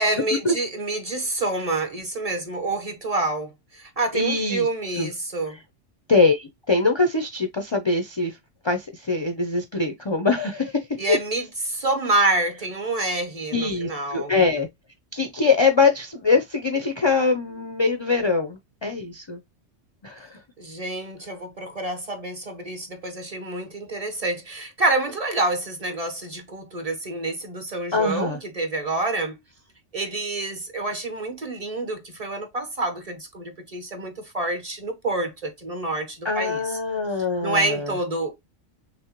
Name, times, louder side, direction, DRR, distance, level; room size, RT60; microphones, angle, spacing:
voice 1, 0.0-5.6 11.0-14.3 20.6-29.4 29.9-36.8 37.4-38.4, right 2 dB, 35° right, 0.8 m, -27 dB
voice 2, 4.1-4.7 5.0-5.1 6.1-8.4 8.6-10.8 11.1-11.2 13.5-14.7 15.1-19.4 20.0-20.4 27.9-28.4 36.2-37.9, left 4 dB, 45° left, 0.3 m, -23 dB
6.1 x 2.1 x 2.9 m
omnidirectional pair, 1.3 m